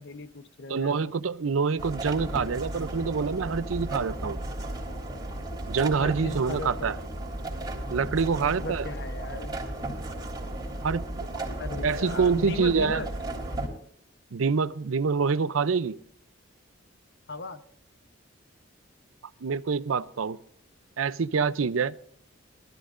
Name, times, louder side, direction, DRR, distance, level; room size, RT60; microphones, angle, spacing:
voice 1, 0.0-1.1 6.0-7.0 8.4-9.6 11.6-13.1 17.3-17.6, left 2 dB, 60° left, 11 dB, 0.9 m, -37 dB
voice 2, 0.7-4.4 5.7-7.0 7.9-8.8 10.8-11.4 11.8-13.0 14.3-16.0 19.4-20.4 21.0-22.0, right 5 dB, 90° right, 16 dB, 0.6 m, -26 dB
sound 1, 1.8-13.7, right 1 dB, 20° right, 3.4 m, -35 dB
20.0 x 13.0 x 2.5 m, 0.65 s
head